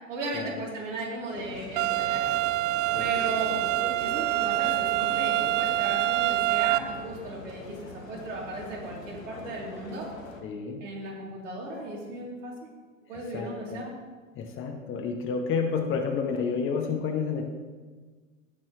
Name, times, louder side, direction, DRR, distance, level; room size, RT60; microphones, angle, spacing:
voice 1, 0.1-2.4 3.0-3.6 4.0-10.1 10.8-12.7 13.1-13.9, right 2 dB, 65° right, -3 dB, 3.2 m, -36 dB
sound 1, 1.3-10.4, left 3 dB, 80° left, 1.5 m, -42 dB
sound 2, 1.8-6.8, right 16 dB, 40° right, 0.4 m, -26 dB
voice 2, 10.4-10.8 13.3-13.8 14.3-17.4, left 5 dB, 30° left, 4 dB, 1.2 m, -30 dB
17.5 x 6.1 x 3.1 m, 1.4 s
figure-of-eight pair, 85°, 40 cm